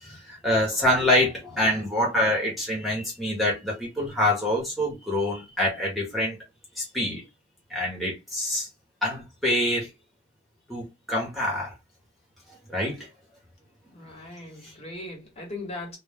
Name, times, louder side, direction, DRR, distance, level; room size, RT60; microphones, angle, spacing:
voice 1, 0.0-6.4 6.8-7.2 7.7-8.7 9.0-9.9 10.7-11.7 12.7-13.1 14.6-14.7, left 1 dB, ahead, 0.7 m, -26 dB
voice 2, 13.9-16.0, left 2 dB, 30° left, 1.0 m, -39 dB
2.1 x 2.0 x 3.2 m
head